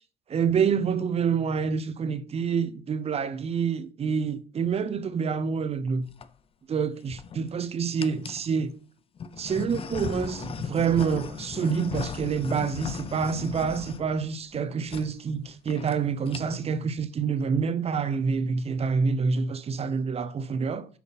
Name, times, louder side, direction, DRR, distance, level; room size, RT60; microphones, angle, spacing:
voice 1, 0.3-6.1 6.7-8.7 9.4-20.9, right 6 dB, 35° right, 0.9 m, -27 dB
sound 1, 5.9-6.3 7.0-7.5 8.0-8.5 9.2-14.6 14.9-15.1 15.4-15.5 15.7-16.0 16.2-16.7, left 6 dB, 35° left, 0.6 m, -37 dB
7.0 x 6.1 x 4.2 m
cardioid pair, 110°, 17 cm